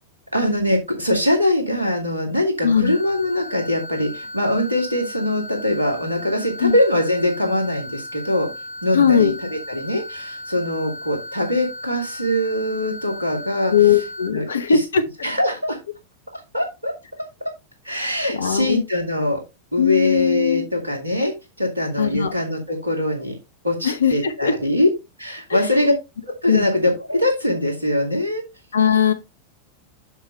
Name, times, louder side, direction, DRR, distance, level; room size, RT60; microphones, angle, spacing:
voice 1, 0.3-8.5 8.8-14.0 14.3-14.8 15.2-15.8 16.3-16.9 17.8-19.4 19.7-21.3 21.6-23.4 23.6-24.9 25.2-25.9 26.2-28.4, left 1 dB, 80° right, 2.6 m, -22 dB
voice 2, 2.6-3.0 6.6-6.8 8.9-9.3 13.7-15.0 18.4-18.8 19.8-20.7 22.0-22.3 23.8-24.5 26.5-26.7 28.7-29.1, left 7 dB, 70° left, 1.0 m, -19 dB
sound 1, 2.8-14.3, left 1 dB, 45° left, 1.9 m, -36 dB
7.2 x 6.7 x 3.3 m
figure-of-eight pair, 90°, 0 cm